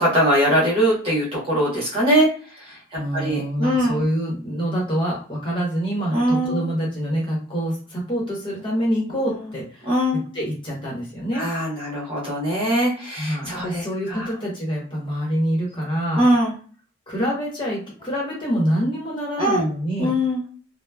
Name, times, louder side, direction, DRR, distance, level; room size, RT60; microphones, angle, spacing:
voice 1, 0.0-4.0 6.1-6.7 9.2-9.5 9.8-10.2 11.3-14.3 16.1-16.5 19.4-19.6 20.0-20.4, equal, 30° right, -5 dB, 1.1 m, -22 dB
voice 2, 3.0-9.9 10.3-11.5 13.2-16.2 17.1-20.2, equal, 25° left, -4 dB, 1.0 m, -26 dB
3.0 x 2.0 x 2.3 m, 0.42 s
head